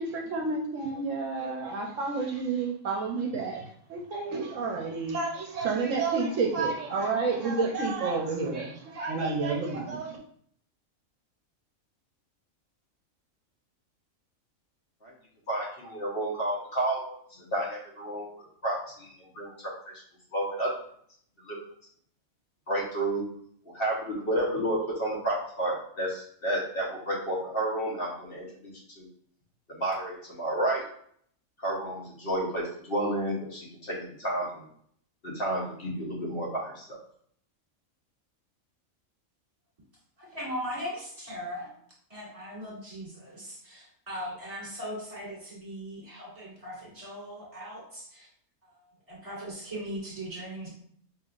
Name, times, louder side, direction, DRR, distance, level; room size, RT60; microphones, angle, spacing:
voice 1, 0.0-10.2, right 4 dB, 70° right, 0 dB, 0.9 m, -30 dB
voice 2, 15.5-17.1 17.5-19.5 20.3-20.7 21.4-21.6 22.7-23.2 23.7-29.1 29.7-30.8 31.6-34.7 35.2-37.0, right 1 dB, 45° left, -4 dB, 1.0 m, -31 dB
voice 3, 40.2-41.7 42.1-48.3 48.6-50.7, equal, 25° right, -6 dB, 1.7 m, -39 dB
5.3 x 2.7 x 2.4 m, 0.63 s
omnidirectional pair, 1.4 m